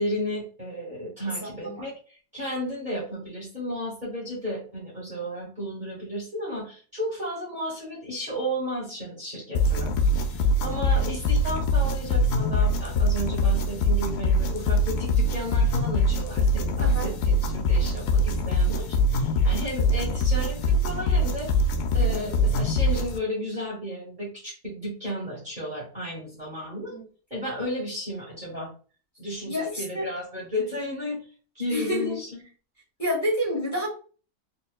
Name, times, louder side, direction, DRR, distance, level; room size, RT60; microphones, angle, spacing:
voice 1, 0.0-10.0 10.3-21.5 21.9-26.9 27.3-28.7 29.2-31.2 31.5-32.4, equal, 30° right, -6 dB, 1.8 m, -33 dB
voice 2, 1.4-1.9 16.8-17.1 22.0-22.3 26.9-27.0 27.3-27.5 29.5-30.1 31.7-32.2 33.0-33.9, equal, 10° left, -4 dB, 2.0 m, -29 dB
sound 1, 9.5-23.2, left 1 dB, 85° left, 1.2 m, -23 dB
4.3 x 3.5 x 2.2 m, 0.38 s
omnidirectional pair, 1.6 m